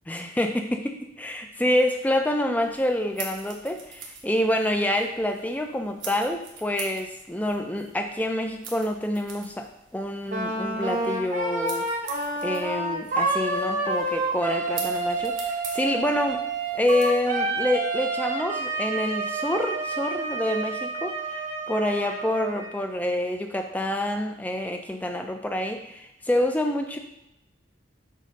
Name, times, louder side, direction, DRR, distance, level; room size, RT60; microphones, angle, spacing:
voice 1, 0.1-9.7 9.9-11.9 12.4-16.4 16.7-21.4 21.7-27.0, left 1 dB, 10° left, 4 dB, 0.5 m, -27 dB
sound 1, 2.6-17.2, right 5 dB, 80° right, 1.2 m, -44 dB
Wind instrument woodwind instrument, 10.3-22.8, right 2 dB, 40° right, 0.9 m, -29 dB
7.5 x 2.8 x 5.2 m, 0.86 s
head